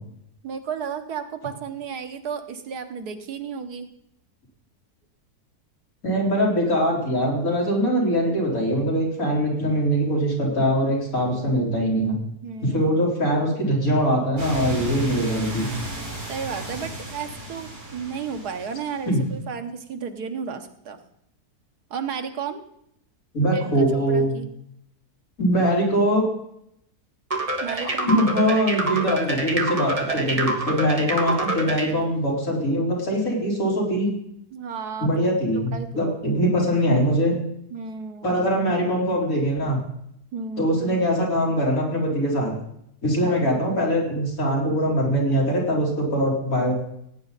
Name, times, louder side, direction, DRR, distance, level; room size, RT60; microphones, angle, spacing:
voice 1, 0.4-3.9 12.4-12.8 16.3-21.0 21.9-22.6 23.5-24.5 27.6-28.2 34.5-35.1 35.5-36.1 37.7-38.4 40.3-40.7 43.2-43.4, right 6 dB, 85° right, 7 dB, 1.7 m, -33 dB
voice 2, 6.0-12.1 12.6-15.7 19.1-19.2 23.3-24.3 25.4-26.2 27.7-34.1 35.0-37.4 38.2-39.8 40.6-42.5 43.0-46.7, equal, 60° left, -3 dB, 4.0 m, -22 dB
sound 1, 14.4-19.2, right 1 dB, 65° right, 3.8 m, -34 dB
sound 2, 27.3-31.9, right 2 dB, 25° right, 1.5 m, -26 dB
17.0 x 9.0 x 4.0 m, 0.75 s
omnidirectional pair, 1.7 m